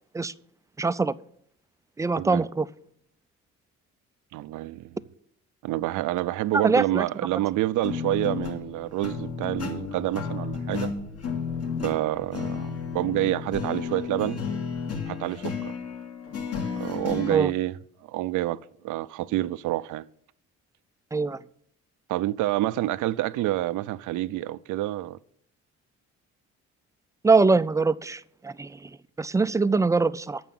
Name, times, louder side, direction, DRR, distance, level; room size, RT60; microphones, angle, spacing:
voice 1, 0.8-1.1 2.0-2.7 6.5-7.0 17.3-17.5 21.1-21.4 27.2-28.9 29.2-30.4, right 4 dB, 10° right, 0.3 m, -23 dB
voice 2, 4.3-5.0 5.6-10.9 11.8-14.4 15.1-15.7 16.7-17.8 18.1-18.6 18.8-20.0 22.1-25.2, right 15 dB, 85° right, 0.5 m, -28 dB
sound 1, 7.8-17.4, left 6 dB, 55° left, 2.4 m, -33 dB
9.3 x 6.8 x 7.6 m
cardioid pair, 90°, 30 cm